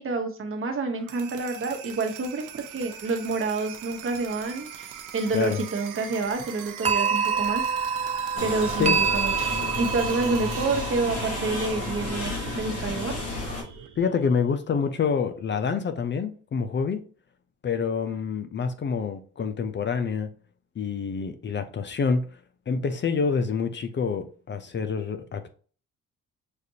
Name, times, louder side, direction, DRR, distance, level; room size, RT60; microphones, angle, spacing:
voice 1, 0.0-7.7 8.4-9.5 9.7-13.2, right 3 dB, 45° right, 1.1 m, -28 dB
sound 1, 0.9-14.8, right 8 dB, 85° right, 0.7 m, -41 dB
sound 2, 6.8-13.4, right 6 dB, 25° right, 0.4 m, -28 dB
sound 3, 8.3-13.6, left 3 dB, 55° left, 1.9 m, -32 dB
voice 2, 14.0-17.0 17.6-20.3 20.8-22.3 22.7-25.5, left 5 dB, 40° left, 0.5 m, -27 dB
6.5 x 2.5 x 2.8 m
cardioid pair, 90°, 30 cm